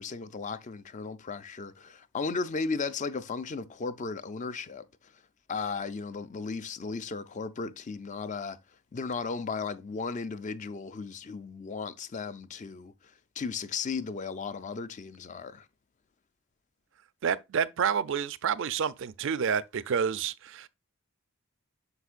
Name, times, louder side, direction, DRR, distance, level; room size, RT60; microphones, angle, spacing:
voice 1, 0.0-5.1 5.5-8.6 8.9-12.9 13.4-15.7, left 4 dB, 35° left, 0.4 m, -35 dB
voice 2, 17.2-20.7, right 7 dB, 55° right, 0.4 m, -29 dB
8.0 x 5.7 x 2.5 m
head